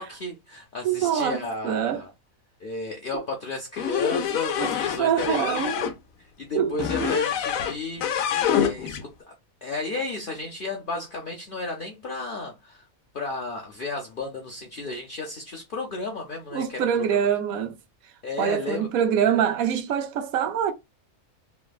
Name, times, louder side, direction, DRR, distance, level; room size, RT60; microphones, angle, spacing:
voice 1, 0.0-2.1 2.6-5.9 6.2-9.3 9.6-12.8 13.1-17.2 18.2-18.9, left 3 dB, 50° left, 0.7 m, -33 dB
voice 2, 0.8-2.0 4.6-4.7 5.0-5.7 6.5-6.7 7.0-7.2 16.5-17.8 18.4-20.7, right 8 dB, 85° right, 1.1 m, -24 dB
sound 1, 3.8-5.9 6.8-9.0, left 8 dB, 80° left, 1.0 m, -26 dB
3.2 x 2.1 x 2.2 m
omnidirectional pair, 1.4 m